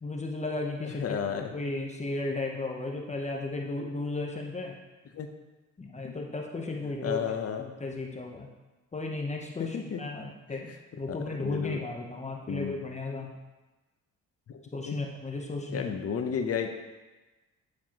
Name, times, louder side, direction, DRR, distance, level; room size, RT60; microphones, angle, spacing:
voice 1, 0.0-1.2 1.5-4.8 5.8-7.2 7.6-8.5 8.9-13.3 14.7-15.9, left 2 dB, 25° left, 1 dB, 0.8 m, -35 dB
voice 2, 0.8-1.5 5.1-5.3 6.0-6.2 7.0-7.6 9.6-10.0 10.5-10.8 11.1-11.8 12.5-12.8 14.5-14.9 15.7-16.8, left 7 dB, 50° left, 6 dB, 0.8 m, -33 dB
9.5 x 4.5 x 2.9 m, 1.2 s
cardioid pair, 90°, 30 cm